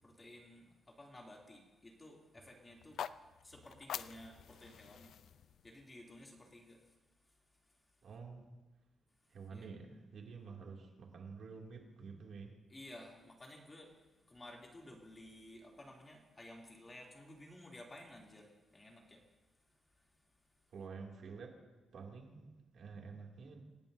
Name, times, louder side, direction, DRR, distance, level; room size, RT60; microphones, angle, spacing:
voice 1, 0.0-3.0 3.4-5.3 5.6-7.8 9.5-9.7 12.7-19.3 19.7-20.2, left 1 dB, 20° left, -1 dB, 2.8 m, -55 dB
sound 1, 2.8-6.9, left 9 dB, 75° left, 0.4 m, -48 dB
voice 2, 8.0-8.5 9.3-12.6 20.7-21.6 21.9-23.6, right 5 dB, 60° right, 0 dB, 2.5 m, -49 dB
27.5 x 17.5 x 2.7 m, 1.2 s
cardioid pair, 130°, 0 cm